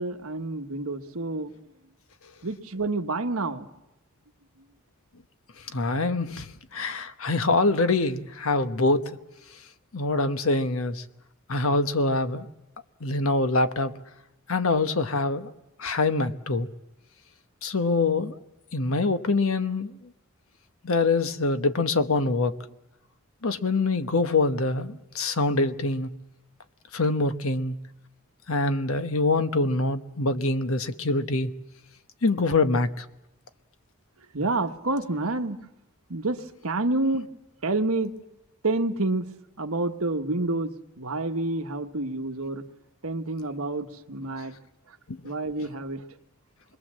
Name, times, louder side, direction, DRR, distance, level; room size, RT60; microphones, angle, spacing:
voice 1, 0.0-1.5 2.4-3.7 34.3-35.6 36.1-37.3 37.6-38.2 38.6-39.3 39.6-42.7 43.0-44.6 45.2-46.0, right 2 dB, 80° right, 6 dB, 1.3 m, -28 dB
voice 2, 5.7-6.5 6.7-9.1 9.9-11.0 11.5-12.5 13.0-13.9 14.5-15.5 15.8-16.7 17.6-18.4 18.7-19.9 20.8-22.6 23.4-26.1 26.9-27.8 28.5-31.5 32.2-33.0 45.1-45.2, left 3 dB, 75° left, 10 dB, 1.1 m, -24 dB
26.5 x 22.0 x 7.5 m, 0.92 s
head